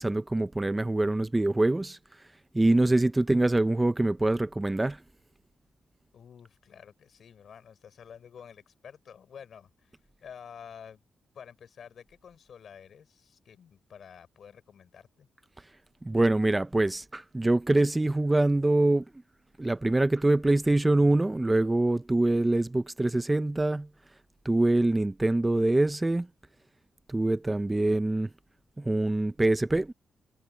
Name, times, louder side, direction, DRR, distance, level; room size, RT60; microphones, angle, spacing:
voice 1, 0.0-2.0 2.5-5.0 16.0-19.0 19.6-23.9 24.5-26.3 27.1-28.3 28.8-29.9, right 2 dB, 15° right, 0.4 m, -24 dB
voice 2, 6.1-11.0 11.3-15.3, left 7 dB, 60° left, 4.2 m, -50 dB
wide cardioid pair, 130°, 0 cm